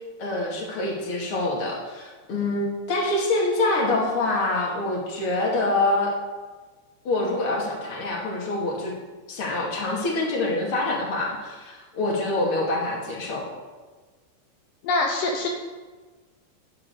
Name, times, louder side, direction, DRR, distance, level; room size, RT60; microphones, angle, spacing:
voice 1, 0.2-6.1 7.0-8.9 9.3-13.5, left 2 dB, 40° left, -2 dB, 2.3 m, -25 dB
voice 2, 14.8-15.5, left 2 dB, 85° left, 1 dB, 1.9 m, -24 dB
10.5 x 6.7 x 8.2 m, 1.3 s
omnidirectional pair, 5.6 m